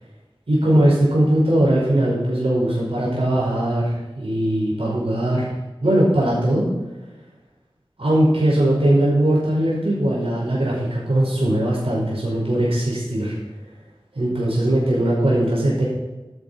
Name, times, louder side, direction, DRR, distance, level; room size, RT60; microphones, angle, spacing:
voice 1, 0.5-5.5 5.8-6.7 8.0-13.3 14.1-15.9, right 1 dB, 80° right, -6 dB, 5.2 m, -20 dB
12.5 x 11.5 x 4.4 m, 1.1 s
wide cardioid pair, 50°, 10 cm